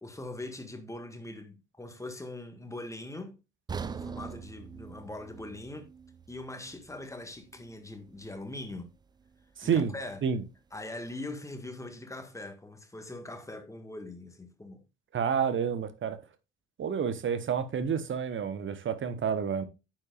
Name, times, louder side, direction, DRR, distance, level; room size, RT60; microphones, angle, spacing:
voice 1, 0.0-3.4 3.9-5.9 6.3-8.9 9.6-10.2 10.7-14.8, left 2 dB, 10° left, 1.7 m, -42 dB
sound 1, 3.7-7.7 8.1-8.3 8.8-8.9, right 6 dB, 10° right, 0.4 m, -42 dB
voice 2, 9.6-9.9 10.2-10.4 15.1-16.2 16.8-19.6, right 7 dB, 30° right, 1.1 m, -29 dB
9.6 x 7.5 x 2.4 m
figure-of-eight pair, 55°, 37 cm